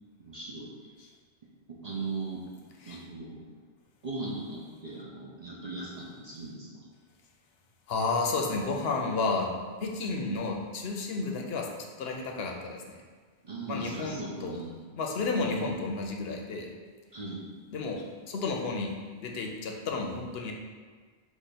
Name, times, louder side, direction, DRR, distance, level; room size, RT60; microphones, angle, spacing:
voice 1, 0.2-0.7 1.7-2.4 2.9-3.4 4.0-6.7 13.4-14.8 17.1-17.4, right 3 dB, 45° right, -6 dB, 0.8 m, -38 dB
voice 2, 7.9-9.5 9.8-11.7 12.0-13.0 13.7-14.6 14.9-16.7 17.7-20.5, left 3 dB, 80° left, 1 dB, 0.9 m, -32 dB
5.0 x 2.5 x 4.1 m, 1.5 s
omnidirectional pair, 1.0 m